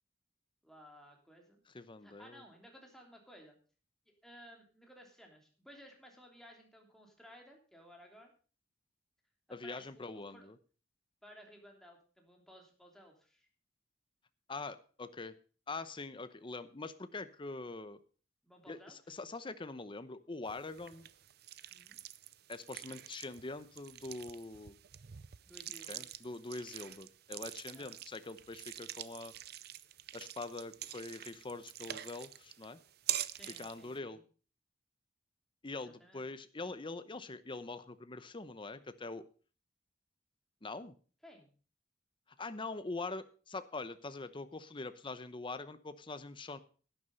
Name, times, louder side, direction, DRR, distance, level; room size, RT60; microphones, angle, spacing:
voice 1, 0.6-1.6 2.0-3.6 4.2-8.3 9.5-10.5 11.2-13.5 18.4-19.1 20.8-20.9 21.7-22.0 25.4-26.1 27.7-28.0 33.3-34.2 35.8-36.3 41.2-41.5, equal, 5° left, 1 dB, 3.1 m, -57 dB
voice 2, 1.7-2.4 9.5-10.6 14.5-15.4 15.7-18.0 18.7-21.1 22.5-24.8 25.9-29.3 30.1-32.8 33.5-34.2 35.6-39.2 40.6-40.9 42.4-46.6, left 3 dB, 30° left, 12 dB, 0.8 m, -44 dB
sound 1, 20.5-34.0, right 13 dB, 60° right, 0.6 m, -45 dB
11.5 x 9.8 x 5.3 m, 0.39 s
head